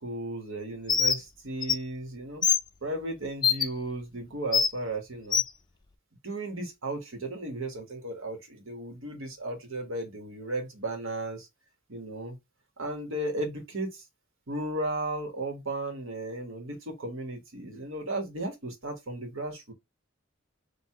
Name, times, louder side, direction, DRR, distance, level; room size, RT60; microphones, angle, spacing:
voice 1, 0.0-2.4 2.8-5.4 6.2-11.5 11.9-12.4 12.8-14.0 14.5-19.7, right 2 dB, 80° right, 1.4 m, -35 dB
Bird, 0.9-1.2 1.6-1.8 2.4-2.6 3.4-3.7 4.5-4.7 5.3-5.5, left 7 dB, 20° left, 0.4 m, -23 dB
4.7 x 2.6 x 3.5 m
head